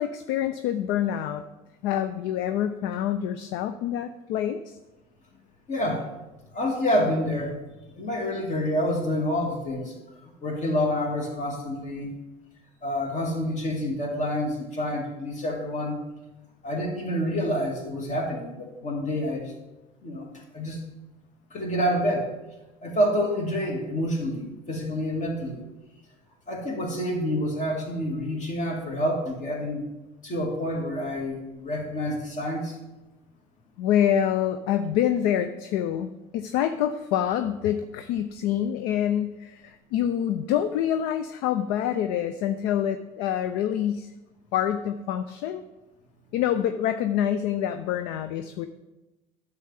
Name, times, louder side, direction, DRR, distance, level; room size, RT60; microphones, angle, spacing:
voice 1, 0.0-1.5 1.8-4.8 33.8-44.1 44.5-45.6 46.3-48.7, left 10 dB, 60° left, 10 dB, 0.5 m, -26 dB
voice 2, 5.7-6.0 6.5-7.6 7.9-9.9 10.2-12.1 12.8-16.0 16.6-19.5 20.0-20.3 20.5-20.8 21.5-22.3 22.8-25.6 26.5-29.8 30.2-32.8, equal, 40° left, 0 dB, 2.3 m, -28 dB
10.0 x 6.8 x 3.5 m, 1.1 s
hypercardioid pair, 70°, 19 cm